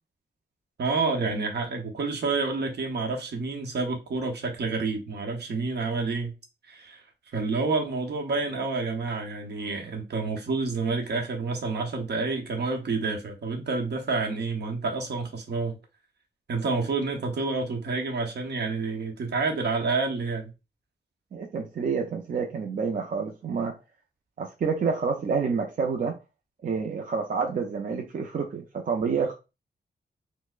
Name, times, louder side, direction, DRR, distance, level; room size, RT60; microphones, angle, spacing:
voice 1, 0.8-6.3 6.6-7.0 7.3-15.8 16.5-20.5, right 3 dB, 70° right, 0.8 m, -29 dB
voice 2, 21.3-23.7 24.4-26.2 26.6-29.3, right 5 dB, 50° right, 0.5 m, -28 dB
4.3 x 2.0 x 2.4 m
wide cardioid pair, 115°, 18 cm